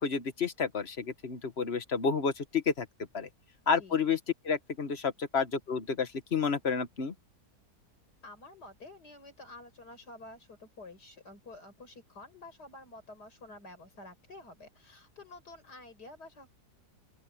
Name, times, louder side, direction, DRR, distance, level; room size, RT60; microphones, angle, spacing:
voice 1, 0.0-2.9 3.1-3.3 3.7-4.2 4.4-7.1, left 5 dB, 40° left, 1.6 m, -30 dB
voice 2, 3.8-4.1 8.2-16.5, left 2 dB, 80° left, 6.0 m, -50 dB
open air
omnidirectional pair, 1.7 m